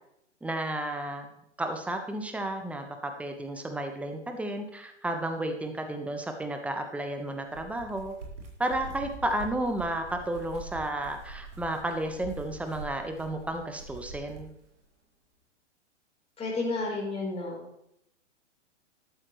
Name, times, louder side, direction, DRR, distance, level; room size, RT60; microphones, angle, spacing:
voice 1, 0.4-1.3 1.6-8.1 8.6-14.5, right 1 dB, 5° right, 5 dB, 1.2 m, -32 dB
sound 1, 7.3-14.5, right 3 dB, 70° right, 4.6 m, -44 dB
voice 2, 16.4-17.6, left 3 dB, 15° left, -3 dB, 4.1 m, -31 dB
13.5 x 12.5 x 3.2 m, 0.77 s
figure-of-eight pair, 110°, 36 cm